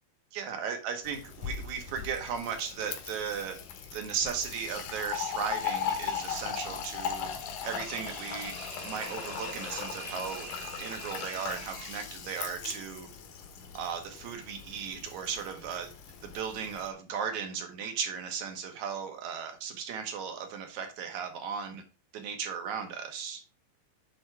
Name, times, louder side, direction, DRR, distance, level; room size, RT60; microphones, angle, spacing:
voice 1, 0.3-3.6 3.9-7.3 7.6-8.6 8.8-10.5 10.8-13.1 13.7-15.9 16.2-21.8 22.1-23.4, right 7 dB, 75° right, 5 dB, 2.6 m, -36 dB
Fill (with liquid), 1.0-16.9, left 8 dB, 80° left, 2.6 m, -39 dB
sound 1, 7.5-12.0, right 5 dB, 60° right, 0.9 m, -45 dB
9.6 x 3.7 x 4.7 m, 0.32 s
omnidirectional pair, 3.4 m